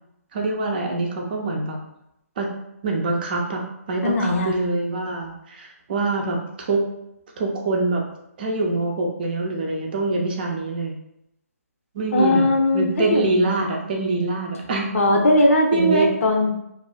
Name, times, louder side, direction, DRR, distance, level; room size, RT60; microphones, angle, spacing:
voice 1, 0.3-1.8 2.4-2.5 2.8-3.6 3.9-6.9 7.4-8.0 8.4-10.9 11.9-15.0 15.7-16.1, right 3 dB, 35° right, 1 dB, 0.4 m, -24 dB
voice 2, 4.0-4.5 12.1-13.4 14.9-16.5, left 1 dB, 60° left, 2 dB, 0.6 m, -19 dB
2.4 x 2.3 x 2.3 m, 0.82 s
figure-of-eight pair, 150°, 8 cm